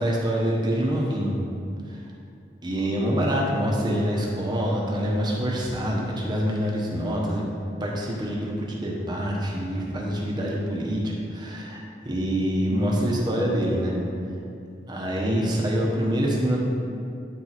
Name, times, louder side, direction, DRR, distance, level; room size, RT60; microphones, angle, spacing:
voice 1, 0.0-1.3 1.9-2.0 2.6-7.5 7.8-11.0 11.3-11.8 12.0-13.9 14.9-16.6, equal, 25° right, -3 dB, 1.1 m, -25 dB
9.3 x 4.6 x 4.2 m, 2.5 s
head